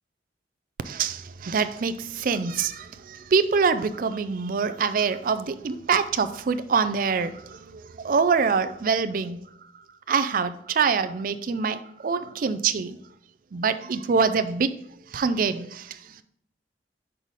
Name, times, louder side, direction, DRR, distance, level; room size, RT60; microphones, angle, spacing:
voice 1, 0.8-9.4 10.1-13.0 13.5-14.7 15.1-16.2, right 5 dB, 45° right, 0.4 m, -25 dB
5.6 x 4.1 x 4.7 m
head